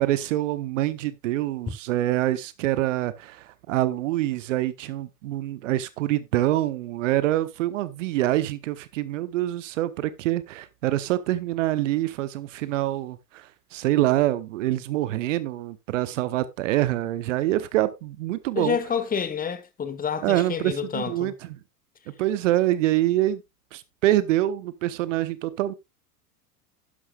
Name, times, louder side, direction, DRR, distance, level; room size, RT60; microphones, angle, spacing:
voice 1, 0.0-18.8 20.2-21.3 22.2-23.4 23.7-25.7, right 14 dB, 55° right, 0.9 m, -25 dB
voice 2, 18.5-21.3, left 7 dB, 20° left, 1.5 m, -28 dB
11.5 x 11.0 x 2.3 m
figure-of-eight pair, 85°, 46 cm